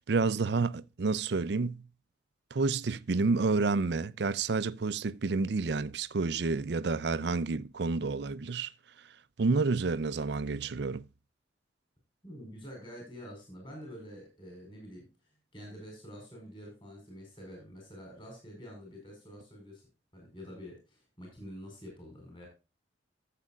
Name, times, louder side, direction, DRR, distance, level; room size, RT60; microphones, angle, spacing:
voice 1, 0.0-1.9 2.5-8.7 9.4-11.0, right 4 dB, 60° right, 0.5 m, -29 dB
voice 2, 12.2-22.5, equal, 25° left, 4.2 m, -47 dB
14.5 x 7.6 x 2.3 m
head